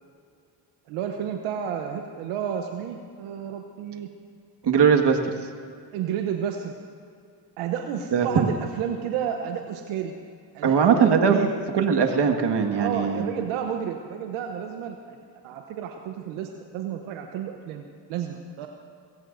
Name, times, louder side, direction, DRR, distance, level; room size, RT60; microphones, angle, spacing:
voice 1, 0.9-4.1 5.9-6.7 7.6-10.1 10.5-11.5 12.8-15.2 15.4-18.7, right 8 dB, 85° right, 4 dB, 1.0 m, -31 dB
voice 2, 4.6-5.2 8.1-8.5 10.6-11.4 11.7-13.2, right 6 dB, 55° right, 3 dB, 1.9 m, -20 dB
22.5 x 17.0 x 2.7 m, 2.3 s
supercardioid pair, 60°, 48 cm